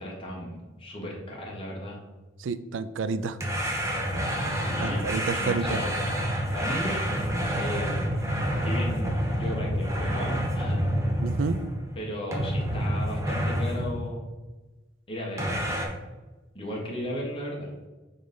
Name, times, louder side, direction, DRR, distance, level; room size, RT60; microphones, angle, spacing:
voice 1, 0.0-2.0 4.5-5.1 5.4-5.9 6.5-7.9 8.6-10.8 11.9-14.2 15.1-15.6 16.5-17.7, equal, 25° left, -2 dB, 1.4 m, -35 dB
voice 2, 2.4-3.4 4.8-5.8 11.2-11.6, right 4 dB, 75° right, 13 dB, 0.4 m, -29 dB
sound 1, 3.4-11.9 12.3-14.0 15.4-15.9, equal, 15° right, 0.8 m, -28 dB
5.1 x 4.0 x 5.2 m, 1.2 s
head